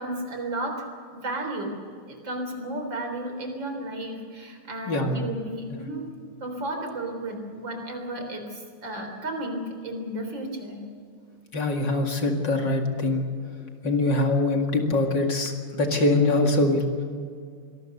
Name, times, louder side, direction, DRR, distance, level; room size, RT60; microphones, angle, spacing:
voice 1, 0.0-1.7 2.1-6.0 6.4-10.8, right 1 dB, 55° right, 4 dB, 4.4 m, -33 dB
voice 2, 4.9-5.3 11.5-16.9, left 2 dB, 55° left, 3 dB, 2.8 m, -24 dB
25.5 x 20.0 x 6.8 m, 2.2 s
omnidirectional pair, 2.4 m